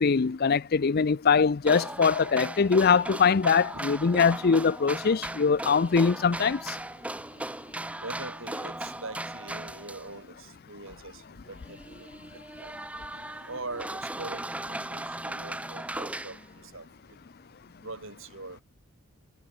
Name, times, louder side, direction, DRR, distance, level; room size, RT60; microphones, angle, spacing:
voice 1, 0.0-6.8, left 5 dB, 45° left, 0.5 m, -23 dB
sound 1, 1.6-10.2 10.9-11.0 11.5-16.5, right 1 dB, 5° right, 0.6 m, -37 dB
voice 2, 8.0-12.7 13.5-17.2 17.8-18.6, right 3 dB, 60° right, 4.8 m, -43 dB
head